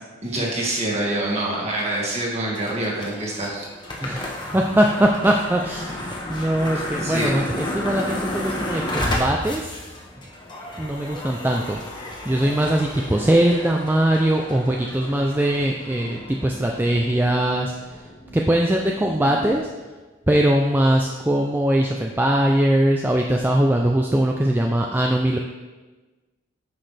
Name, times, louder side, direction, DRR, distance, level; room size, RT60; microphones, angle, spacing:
voice 1, 0.2-3.7 6.7-7.3, right 1 dB, 35° right, -3 dB, 1.8 m, -26 dB
sound 1, 2.5-19.6, left 1 dB, 25° left, 1.2 m, -33 dB
voice 2, 4.0-9.7 10.8-17.7 18.3-19.7 20.3-25.4, right 1 dB, 10° right, 1 dB, 0.4 m, -21 dB
9.8 x 6.3 x 3.4 m, 1.2 s
head